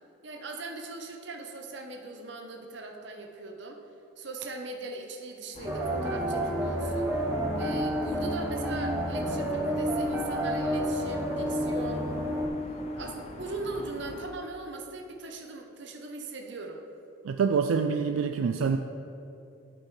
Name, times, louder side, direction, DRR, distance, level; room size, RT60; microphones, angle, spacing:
voice 1, 0.2-3.8 4.2-7.1 7.5-12.1 12.6-16.8, right 2 dB, 55° right, 3 dB, 0.7 m, -40 dB
sound 1, 5.5-14.3, left 2 dB, 30° left, 0.4 m, -43 dB
sound 2, 5.7-12.5, equal, 10° right, 0.7 m, -29 dB
voice 2, 17.2-18.8, right 5 dB, 75° right, 6 dB, 0.3 m, -26 dB
12.0 x 5.3 x 3.2 m, 2.8 s
head